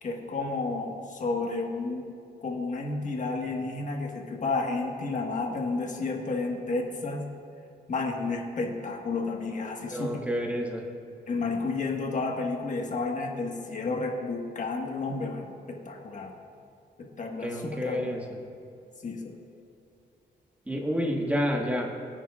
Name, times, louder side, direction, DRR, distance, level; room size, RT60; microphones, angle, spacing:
voice 1, 0.0-2.1 2.4-7.2 7.9-10.2 11.3-16.3 17.0-18.0 19.0-19.4, left 3 dB, 45° left, 1 dB, 1.5 m, -31 dB
voice 2, 9.9-10.9 17.4-18.4 20.7-21.9, equal, 10° right, 0 dB, 1.4 m, -29 dB
23.5 x 9.0 x 2.4 m, 2.6 s
wide cardioid pair, 145°, 18 cm